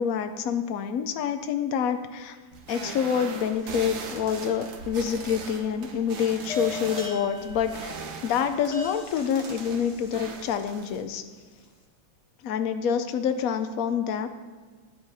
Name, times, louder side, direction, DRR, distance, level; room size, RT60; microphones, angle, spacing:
voice 1, 0.0-2.4 2.7-7.9 8.2-11.2 12.4-14.3, left 7 dB, 85° left, 9 dB, 0.7 m, -27 dB
sound 1, 2.5-11.0, right 4 dB, 70° right, 1.8 m, -40 dB
sound 2, 4.5-5.1 6.5-11.0, left 3 dB, 20° left, 1.1 m, -39 dB
11.0 x 9.2 x 4.8 m, 1.5 s
omnidirectional pair, 2.3 m